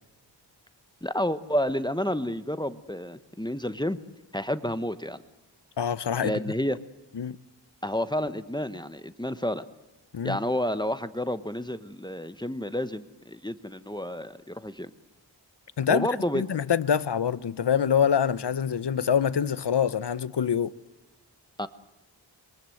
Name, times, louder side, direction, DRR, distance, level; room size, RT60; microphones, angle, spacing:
voice 1, 1.0-4.0 4.3-5.2 6.2-6.8 7.8-9.7 10.2-14.9 15.9-16.4 21.6-21.7, equal, 10° left, 1.1 m, -30 dB
voice 2, 5.8-6.3 7.1-7.4 10.1-10.4 15.8-16.1 16.3-20.7, left 8 dB, 70° left, 0.9 m, -25 dB
26.5 x 23.5 x 7.8 m
wide cardioid pair, 85°, 42 cm